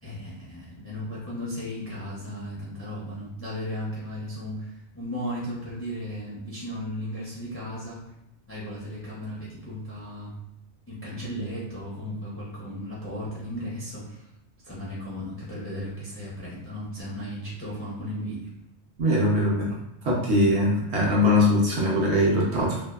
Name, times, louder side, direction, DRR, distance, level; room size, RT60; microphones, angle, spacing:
voice 1, 0.0-8.0 8.5-10.3 10.9-14.2 14.6-18.5, equal, 20° left, -7 dB, 0.4 m, -35 dB
voice 2, 19.0-19.8 20.0-22.8, left 1 dB, 70° right, -3 dB, 1.0 m, -21 dB
2.6 x 2.2 x 2.3 m, 0.86 s
omnidirectional pair, 1.2 m